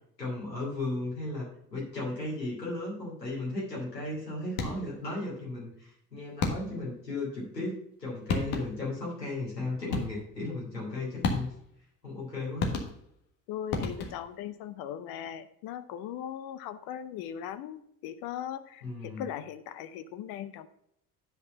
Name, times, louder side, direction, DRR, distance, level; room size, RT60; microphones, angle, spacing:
voice 1, 0.2-11.5 12.0-12.7 18.8-19.3, left 2 dB, 90° left, -5 dB, 3.0 m, -35 dB
sound 1, 4.5-5.0 6.4-6.9 7.9-8.0 8.3-8.9 9.9-10.4 11.2-11.8 12.6-13.3 13.7-14.4, left 4 dB, 65° left, 1.6 m, -32 dB
voice 2, 13.5-20.7, left 10 dB, 50° left, 15 dB, 0.7 m, -39 dB
8.9 x 5.3 x 5.4 m, 0.73 s
figure-of-eight pair, 65°, 48 cm